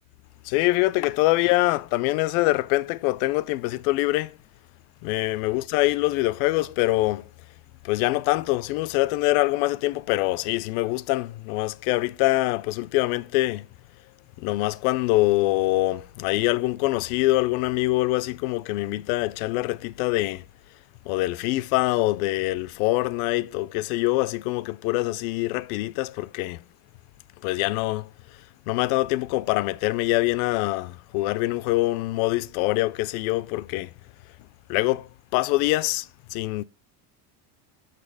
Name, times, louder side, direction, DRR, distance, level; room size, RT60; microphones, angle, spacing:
voice 1, 0.4-4.3 5.0-7.3 7.8-13.7 14.4-20.4 21.1-26.6 27.4-28.1 28.7-33.9 34.7-36.6, left 19 dB, 75° left, 0.6 m, -24 dB
6.7 x 6.1 x 4.7 m
cardioid pair, 155°, 44 cm